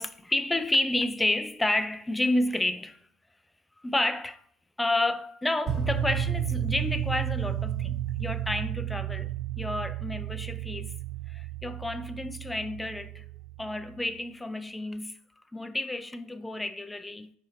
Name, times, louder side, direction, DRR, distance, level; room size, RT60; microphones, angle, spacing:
voice 1, 0.0-3.0 3.8-4.4 4.8-9.3 9.6-10.9 11.3-13.3 13.6-15.2 15.5-17.3, left 1 dB, 10° left, 0.3 m, -30 dB
sound 1, 5.7-13.8, right 10 dB, 30° right, 1.6 m, -32 dB
4.9 x 2.8 x 3.6 m
hypercardioid pair, 80°, 0 cm